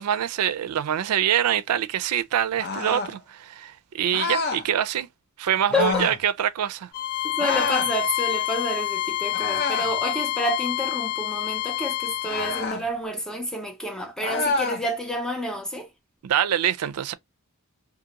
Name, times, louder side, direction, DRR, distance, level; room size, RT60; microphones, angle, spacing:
voice 1, 0.0-5.1 5.4-6.9 16.2-17.1, right 10 dB, 90° right, 0.4 m, -25 dB
sound 1, 2.6-3.2 4.1-4.6 5.7-6.2 7.4-7.9 9.3-10.0 12.2-12.8 14.2-14.8, left 4 dB, 45° left, 0.6 m, -28 dB
Bowed string instrument, 6.9-12.7, left 13 dB, 85° left, 0.7 m, -27 dB
voice 2, 7.2-15.9, equal, 5° left, 0.4 m, -29 dB
2.5 x 2.5 x 2.8 m
head